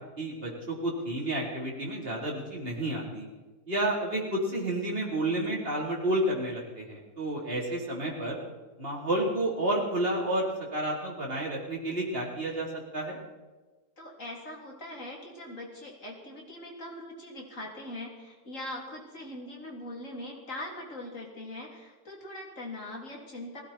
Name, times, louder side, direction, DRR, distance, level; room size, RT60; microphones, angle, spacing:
voice 1, 0.0-3.3 3.7-8.4 8.8-13.2, right 1 dB, 35° right, -3 dB, 4.4 m, -30 dB
voice 2, 14.0-23.6, left 1 dB, 50° left, -1 dB, 3.8 m, -41 dB
19.0 x 17.0 x 4.5 m, 1.2 s
omnidirectional pair, 1.8 m